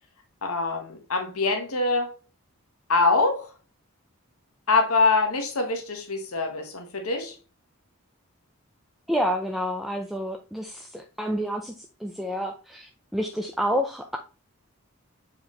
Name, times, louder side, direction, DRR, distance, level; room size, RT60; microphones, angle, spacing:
voice 1, 0.4-2.1 2.9-3.5 4.7-7.3, left 3 dB, 85° left, 1.6 m, -24 dB
voice 2, 9.1-14.2, equal, ahead, 0.6 m, -29 dB
7.5 x 4.9 x 3.1 m
head